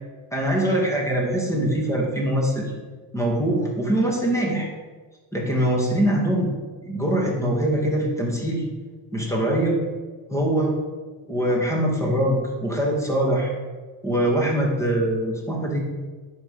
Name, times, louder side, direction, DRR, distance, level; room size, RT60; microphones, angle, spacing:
voice 1, 0.3-2.7 3.1-4.7 5.3-6.5 6.8-8.6 9.1-9.8 10.3-10.7 11.3-13.5 14.0-15.8, right 1 dB, 5° left, -1 dB, 2.3 m, -23 dB
9.2 x 5.3 x 5.7 m, 1.4 s
cardioid pair, 115°, 46 cm